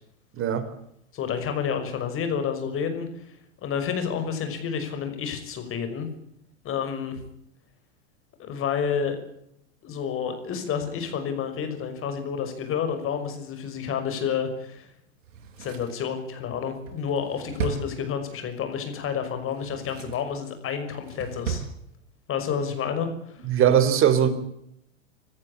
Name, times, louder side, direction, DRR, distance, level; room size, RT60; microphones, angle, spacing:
voice 1, 0.3-0.7 23.4-24.3, right 9 dB, 35° right, 10 dB, 3.9 m, -20 dB
voice 2, 1.1-3.1 3.6-6.1 6.6-7.2 8.4-9.2 9.8-14.9 15.6-21.6 22.3-23.4, left 7 dB, 35° left, 8 dB, 5.9 m, -29 dB
Drawer open or close, 15.2-18.5 19.4-20.3 20.7-21.7 22.0-22.1, right 7 dB, 70° right, 6.2 m, -36 dB
27.0 x 14.0 x 8.7 m, 0.77 s
hypercardioid pair, 105°, 38 cm